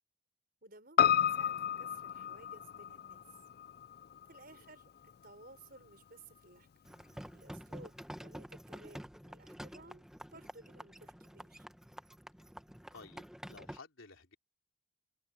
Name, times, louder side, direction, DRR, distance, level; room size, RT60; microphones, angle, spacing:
voice 1, 0.6-3.2 4.3-6.7 7.3-10.0 10.3-11.7, right 2 dB, 50° right, 6.2 m, -57 dB
Piano, 1.0-5.5 5.8-5.9, left 9 dB, 50° left, 0.3 m, -32 dB
sound 1, 6.9-13.8, equal, 5° right, 1.2 m, -49 dB
voice 2, 12.9-14.3, left 3 dB, 85° left, 3.5 m, -54 dB
head